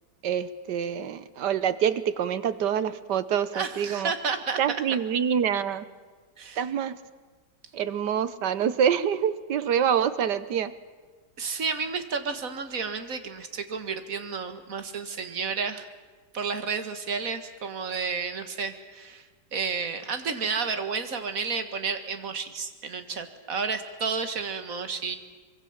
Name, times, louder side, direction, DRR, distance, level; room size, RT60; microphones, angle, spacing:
voice 1, 0.2-4.1 4.6-5.8 6.6-7.0 7.7-10.7, right 8 dB, 75° right, 14 dB, 1.5 m, -26 dB
voice 2, 3.5-4.8 6.4-6.6 11.4-15.9 16.3-19.2 19.5-25.2, right 5 dB, 50° right, 9 dB, 2.0 m, -31 dB
24.5 x 22.5 x 7.3 m, 1.4 s
omnidirectional pair, 1.9 m